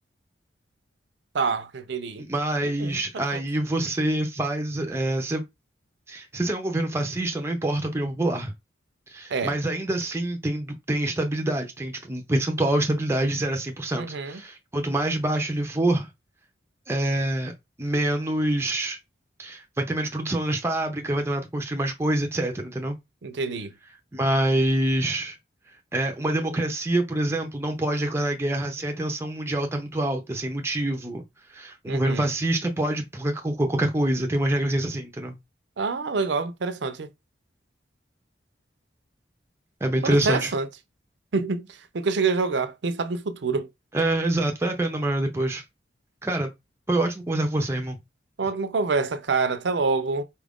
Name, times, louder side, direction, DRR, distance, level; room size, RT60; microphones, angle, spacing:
voice 1, 1.3-2.2 2.6-3.4 9.3-9.6 13.9-14.4 23.2-23.7 31.9-32.3 35.8-37.1 40.0-40.7 41.3-43.7 48.4-50.2, right 4 dB, 70° right, 0.5 m, -27 dB
voice 2, 2.2-5.4 6.1-8.5 9.1-16.1 16.9-17.5 17.8-19.0 19.4-23.0 24.1-25.4 25.9-31.2 31.5-35.4 39.8-40.5 43.9-45.6 46.2-46.5 46.9-48.0, right 1 dB, 15° right, 0.5 m, -26 dB
4.3 x 2.4 x 3.5 m
head